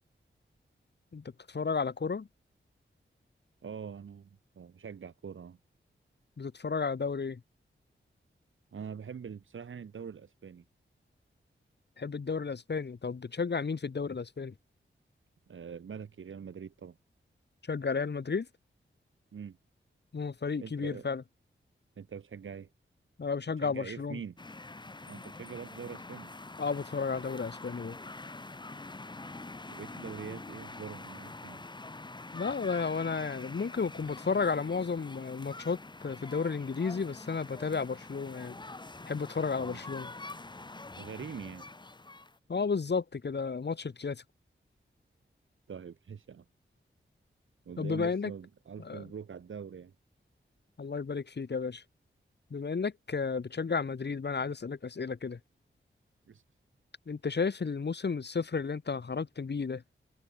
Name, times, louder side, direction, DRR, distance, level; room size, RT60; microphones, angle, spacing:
voice 1, 1.1-2.3 6.4-7.4 12.0-14.5 17.7-18.5 20.1-21.2 23.2-24.2 26.6-28.0 32.3-35.8 36.0-38.6 39.1-40.1 42.5-44.2 47.8-48.3 48.8-49.0 50.8-51.8 52.5-55.4 57.1-59.8, left 5 dB, 55° left, 1.6 m, -33 dB
voice 2, 3.6-4.3 4.5-5.6 8.7-10.6 15.5-17.0 19.3-19.6 20.6-21.1 22.0-22.7 23.6-24.4 25.1-26.3 29.7-31.6 39.6-39.8 41.0-41.7 45.7-46.4 47.6-49.9 56.3-56.4, right 7 dB, 75° right, 1.0 m, -43 dB
sound 1, 24.4-42.4, left 2 dB, 20° left, 0.9 m, -45 dB
cardioid pair, 55°, 21 cm